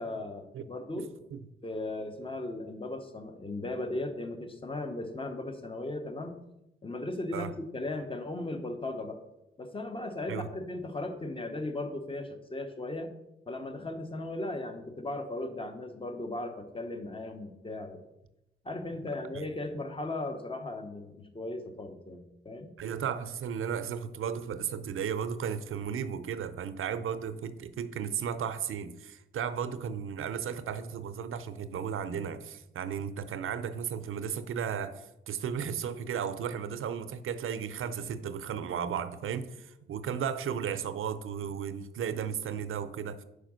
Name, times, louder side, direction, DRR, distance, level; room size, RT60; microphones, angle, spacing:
voice 1, 0.0-1.1 1.6-6.4 6.8-9.2 9.6-13.1 13.5-18.0 18.6-22.7, left 2 dB, 25° left, 1.0 m, -37 dB
voice 2, 0.9-1.4 7.3-7.5 10.3-10.5 19.3-19.4 22.8-43.2, right 7 dB, 75° right, 0.5 m, -35 dB
5.0 x 4.8 x 6.2 m
cardioid pair, 80°, 21 cm